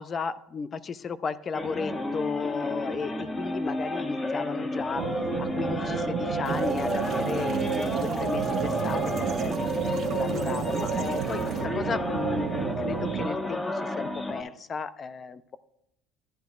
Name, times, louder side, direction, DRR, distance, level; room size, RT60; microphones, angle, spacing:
voice 1, 0.0-15.6, left 5 dB, 35° left, 16 dB, 0.5 m, -35 dB
sound 1, 1.5-14.4, left 2 dB, 20° left, 1.2 m, -31 dB
sound 2, 5.0-13.3, right 10 dB, 60° right, 0.6 m, -31 dB
sound 3, 6.4-11.6, right 7 dB, 45° right, 1.8 m, -46 dB
11.0 x 10.5 x 2.4 m, 0.81 s
supercardioid pair, 85°, 0 cm